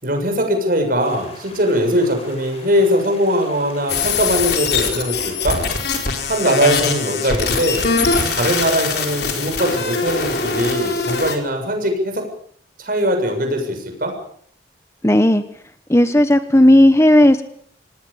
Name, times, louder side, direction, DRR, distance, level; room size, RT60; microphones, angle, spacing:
voice 1, 0.0-5.6 6.3-7.9 8.3-12.3 12.8-14.1, equal, 50° right, 4 dB, 7.2 m, -20 dB
sound 1, 1.0-11.0, left 2 dB, 35° left, 7.8 m, -41 dB
sound 2, 3.9-11.3, left 5 dB, 55° left, 4.5 m, -22 dB
voice 2, 15.0-15.4 15.9-17.4, left 1 dB, 15° left, 10 dB, 1.0 m, -12 dB
27.0 x 19.5 x 7.0 m, 0.63 s
head